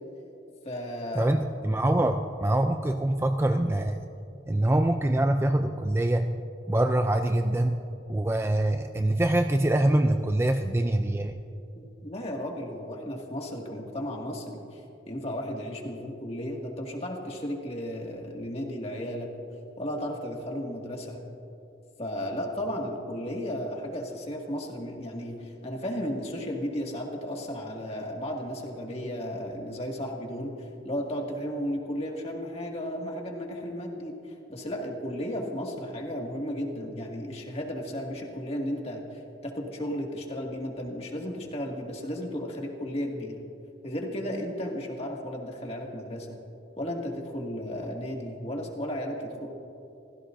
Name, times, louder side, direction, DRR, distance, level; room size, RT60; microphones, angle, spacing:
voice 1, 0.6-1.3 11.8-14.8 15.1-19.3 19.8-21.2 22.0-43.4 43.8-46.4 46.8-49.5, equal, 35° left, 0 dB, 2.1 m, -34 dB
voice 2, 1.2-4.0 4.5-6.4 6.7-11.4, right 1 dB, 15° right, 6 dB, 0.4 m, -24 dB
29.0 x 16.0 x 2.6 m, 2.7 s
head